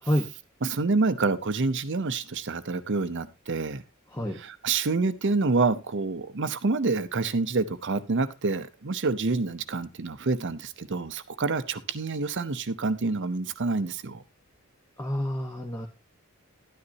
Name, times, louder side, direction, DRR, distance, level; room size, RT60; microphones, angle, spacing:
voice 1, 0.6-3.8 4.4-14.2, right 3 dB, 55° right, 12 dB, 0.7 m, -27 dB
voice 2, 15.0-15.9, equal, 10° left, 2 dB, 1.1 m, -28 dB
12.0 x 9.7 x 2.8 m, 0.26 s
head